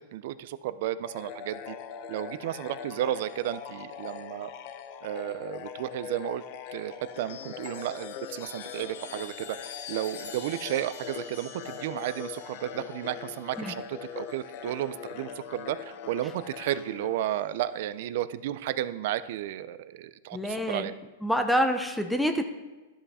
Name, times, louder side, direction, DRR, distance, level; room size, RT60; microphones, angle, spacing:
voice 1, 0.1-1.8 2.1-4.5 5.0-6.4 6.7-9.6 9.9-20.9, right 12 dB, 55° right, 15 dB, 0.4 m, -33 dB
sound 1, 1.0-17.8, left 8 dB, 40° left, 0.6 m, -42 dB
Chime, 7.0-14.9 16.1-16.7, left 6 dB, 75° left, 1.5 m, -47 dB
voice 2, 20.3-20.9 21.2-22.5, equal, ahead, 6 dB, 0.5 m, -27 dB
11.5 x 5.6 x 4.2 m, 1.2 s
supercardioid pair, 155°, 0 cm